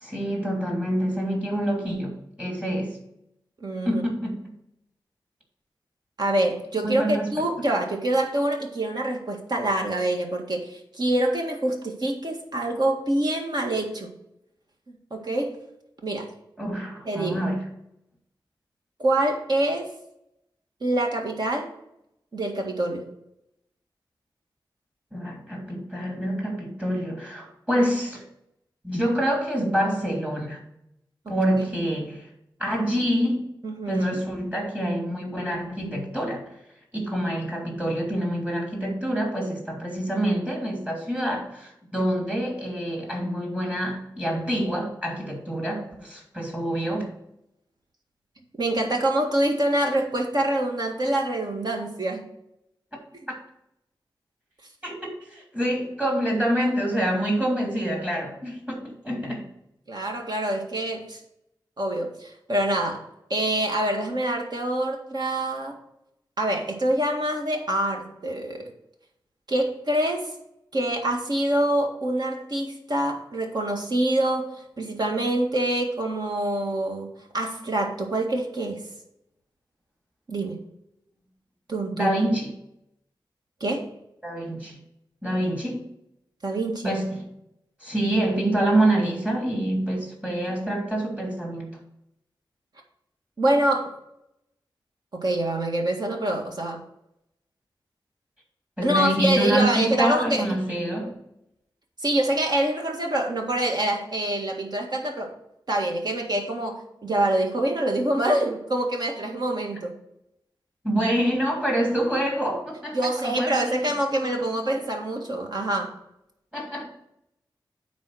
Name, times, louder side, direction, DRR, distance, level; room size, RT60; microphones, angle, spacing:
voice 1, 0.0-3.0 3.8-4.5 6.8-7.4 16.6-17.6 25.1-28.2 28.8-30.6 31.3-32.3 32.6-33.5 33.9-36.5 36.9-47.1 53.3-53.4 54.8-59.4 82.0-82.5 84.2-84.8 85.2-85.8 86.8-87.3 87.8-91.8 98.8-101.2 110.8-113.0 113.2-113.7 116.5-116.9, right 1 dB, 15° right, -1 dB, 2.9 m, -26 dB
voice 2, 3.6-4.0 6.2-14.1 14.9-15.6 16.0-16.3 17.1-17.4 19.0-19.9 20.8-21.7 22.3-23.1 27.8-27.9 33.6-34.2 48.6-52.3 59.9-61.2 61.8-63.0 63.3-65.8 66.4-68.7 69.5-70.3 70.7-78.8 80.3-80.6 81.7-82.1 83.6-83.9 86.4-86.9 93.4-93.9 95.1-96.8 98.8-100.5 102.0-105.3 105.7-109.9 112.9-115.9, right 1 dB, 55° right, 1 dB, 1.8 m, -25 dB
9.4 x 4.2 x 6.3 m, 0.79 s
wide cardioid pair, 95°, 8 cm